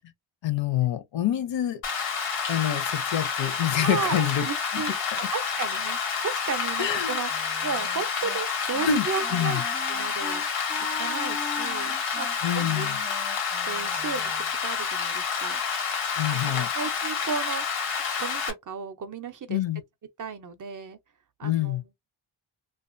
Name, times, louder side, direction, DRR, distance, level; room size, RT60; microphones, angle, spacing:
voice 1, 0.4-1.8 2.5-4.4 4.7-4.8 5.1-5.2 6.8-7.2 8.8-9.6 12.4-13.0 16.1-16.7 19.5-19.8 21.4-21.8, left 10 dB, 60° left, 0.6 m, -26 dB
Rain, 1.8-18.5, left 6 dB, 85° left, 1.0 m, -29 dB
voice 2, 3.8-6.0 6.2-7.3 7.6-9.6 9.9-10.4 11.0-12.3 12.5-12.9 13.7-15.6 16.3-17.6 18.2-19.6 20.2-21.0 21.4-21.9, right 6 dB, 40° right, 0.5 m, -34 dB
Wind instrument woodwind instrument, 7.3-8.4 8.7-9.0 9.2-14.5, left 4 dB, 20° left, 0.3 m, -40 dB
2.4 x 2.3 x 2.4 m
cardioid pair, 75°, 50 cm